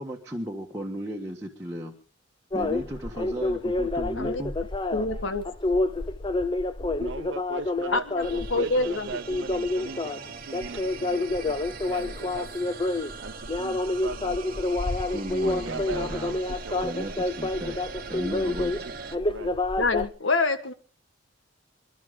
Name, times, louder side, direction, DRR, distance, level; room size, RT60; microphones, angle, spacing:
voice 1, 0.0-1.9 2.5-4.5 15.1-16.4 16.8-17.8 18.1-18.8, equal, 15° right, -3 dB, 1.6 m, -35 dB
sound 1, 2.5-20.1, left 2 dB, 25° left, 0.6 m, -28 dB
voice 2, 4.9-5.4 7.9-9.1 19.8-20.7, left 3 dB, 75° left, 9 dB, 1.5 m, -26 dB
voice 3, 7.0-8.0 8.5-10.2 10.5-12.7 13.2-14.4 15.4-17.0 18.4-18.6 19.3-19.6, right 4 dB, 70° right, 6 dB, 0.7 m, -39 dB
sound 2, 8.2-19.2, right 5 dB, 45° right, 1.1 m, -41 dB
27.0 x 11.5 x 3.9 m, 0.38 s
head